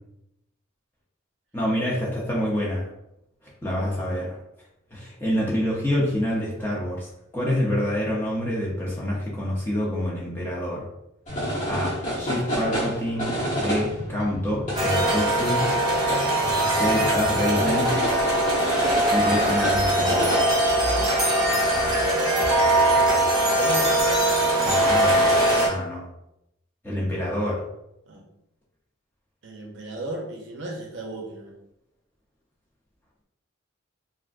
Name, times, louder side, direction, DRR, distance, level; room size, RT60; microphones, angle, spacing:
voice 1, 1.5-2.9 3.6-4.4 4.9-10.9 11.7-15.7 16.7-17.9 19.1-20.5 24.6-25.3 25.7-26.0 26.8-27.6, left 1 dB, 10° left, -6 dB, 0.6 m, -27 dB
sound 1, 11.3-21.0, equal, 40° left, 0.9 m, -30 dB
sound 2, 14.7-25.7, right 1 dB, 20° right, 0.9 m, -21 dB
voice 2, 23.3-23.9 28.1-28.2 29.4-31.6, right 2 dB, 65° right, 0 dB, 0.6 m, -35 dB
3.4 x 2.5 x 2.4 m, 0.84 s
head